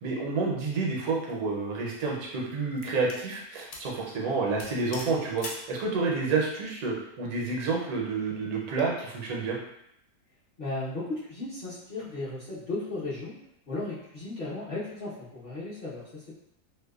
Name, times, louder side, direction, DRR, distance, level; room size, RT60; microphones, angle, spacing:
voice 1, 0.0-9.6, right 4 dB, 75° right, -2 dB, 1.1 m, -29 dB
sound 1, 1.3-1.4 2.0-3.3 3.7-4.0 4.2-4.3 4.6-5.7, left 2 dB, 70° left, 0.9 m, -42 dB
voice 2, 10.6-13.4 13.7-16.4, left 2 dB, 50° left, -11 dB, 0.6 m, -35 dB
2.8 x 2.1 x 2.3 m, 0.80 s
omnidirectional pair, 1.6 m